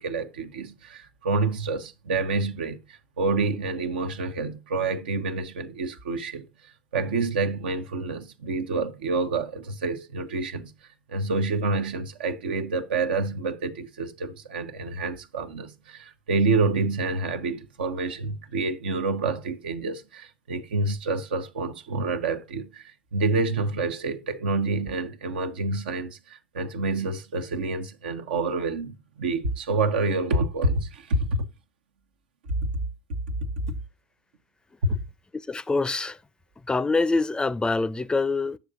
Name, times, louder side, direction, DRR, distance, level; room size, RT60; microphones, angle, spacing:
voice 1, 0.0-6.5 6.9-10.7 11.1-31.4 34.8-35.0, right 3 dB, 80° right, 0.8 m, -28 dB
voice 2, 35.5-36.2 36.7-38.6, left 3 dB, 15° left, 0.5 m, -25 dB
9.3 x 6.6 x 2.4 m
hypercardioid pair, 70°, 5 cm